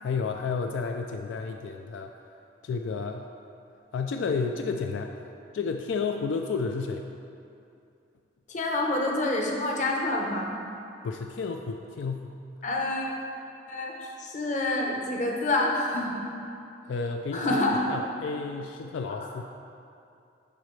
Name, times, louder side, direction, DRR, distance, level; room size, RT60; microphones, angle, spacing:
voice 1, 0.0-2.1 2.6-3.2 3.9-5.1 5.5-7.1 11.0-12.4 16.9-17.6 17.9-19.4, left 4 dB, 80° left, 4 dB, 0.3 m, -31 dB
voice 2, 8.5-10.5 12.6-13.1 13.7-13.9 14.2-16.2 17.3-17.9, left 2 dB, 40° left, 0 dB, 0.8 m, -27 dB
11.0 x 4.3 x 3.2 m, 2.6 s
head